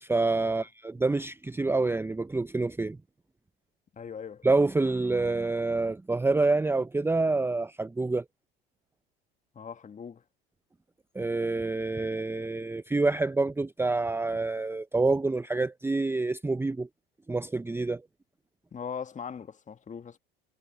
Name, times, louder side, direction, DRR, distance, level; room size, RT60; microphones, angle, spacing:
voice 1, 0.0-3.0 4.4-8.2 11.1-16.9 17.3-18.0, right 3 dB, 10° right, 0.8 m, -27 dB
voice 2, 3.9-4.5 9.6-10.2 18.7-20.2, left 6 dB, 25° left, 1.7 m, -40 dB
hypercardioid pair, 80°, 30 cm